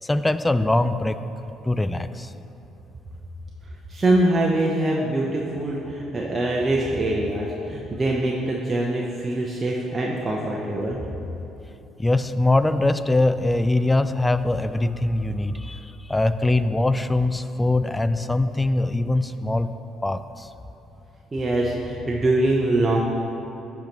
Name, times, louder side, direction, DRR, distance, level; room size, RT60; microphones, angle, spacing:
voice 1, 0.0-1.2 1.6-2.3 12.0-19.7 20.0-20.5, left 2 dB, 15° left, 12 dB, 0.3 m, -22 dB
voice 2, 3.9-11.0 21.3-23.0, right 1 dB, 30° right, -3 dB, 0.8 m, -23 dB
11.5 x 4.6 x 2.9 m, 3.0 s
hypercardioid pair, 55°, 0 cm